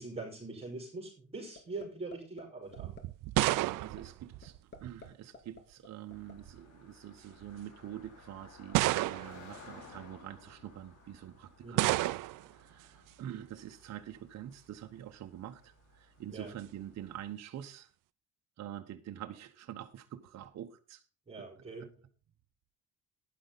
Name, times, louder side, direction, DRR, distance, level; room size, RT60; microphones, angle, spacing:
voice 1, 0.0-3.0 11.6-11.9 16.3-16.6 21.3-21.8, right 3 dB, 20° right, 4.9 m, -43 dB
sound 1, 1.6-2.4 2.7-3.0 3.4-3.6 4.0-4.1 4.4-5.1 5.3-6.3, left 4 dB, 35° left, 2.4 m, -49 dB
sound 2, 2.8-5.1 6.1-6.6 7.4-7.5 8.7-9.5 11.8-12.5, right 18 dB, 90° right, 0.5 m, -31 dB
voice 2, 3.5-11.9 12.4-17.9 18.6-21.0 21.8-21.9, right 11 dB, 55° right, 1.0 m, -46 dB
Car passing by, 6.1-17.3, left 3 dB, 65° left, 4.5 m, -57 dB
12.0 x 10.5 x 4.0 m
cardioid pair, 130°, 31 cm